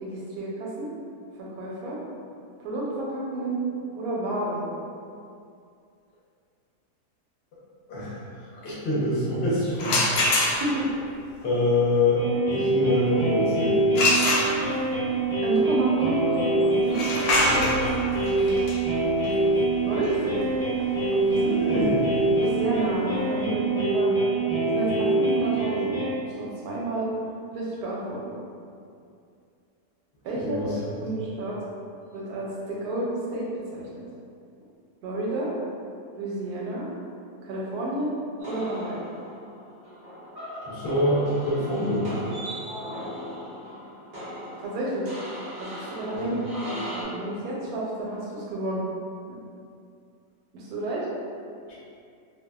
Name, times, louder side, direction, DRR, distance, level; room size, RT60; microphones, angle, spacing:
voice 1, 0.0-0.9 1.4-2.0 2.6-3.6 3.9-4.6 10.6-10.9 15.4-17.0 18.4-18.6 19.8-20.4 21.1-21.4 21.7-21.8 22.4-24.2 24.6-25.9 26.2-27.1 27.5-28.2 30.2-31.6 32.1-34.0 35.0-35.5 36.2-36.9 37.4-38.1 38.5-39.0 44.6-45.1 45.6-48.8 49.3-49.4 50.5-51.1, right 2 dB, 75° right, -4 dB, 1.1 m, -30 dB
voice 2, 7.9-10.2 11.4-12.2 12.5-13.8 17.5-17.7 21.3-22.0 30.3-30.8 40.6-42.1 46.2-46.3, left 1 dB, 50° left, -9 dB, 0.8 m, -25 dB
sound 1, 9.8-10.9 13.9-15.0 16.8-22.5, left 1 dB, 75° left, 1.1 m, -26 dB
sound 2, 12.2-26.1, right 3 dB, ahead, 0.8 m, -25 dB
sound 3, 38.4-47.0, equal, 50° right, 0.6 m, -38 dB
2.6 x 2.3 x 2.2 m, 2.4 s
omnidirectional pair, 1.7 m